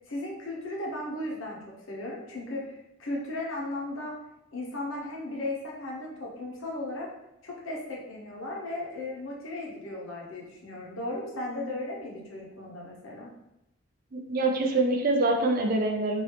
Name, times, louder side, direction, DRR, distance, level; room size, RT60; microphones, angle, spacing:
voice 1, 0.1-1.6 1.9-4.1 4.5-7.1 7.4-13.3, left 1 dB, 70° left, -3 dB, 0.9 m, -36 dB
voice 2, 14.1-16.2, right 2 dB, 45° right, 2 dB, 0.4 m, -25 dB
3.0 x 2.6 x 3.2 m, 0.86 s
head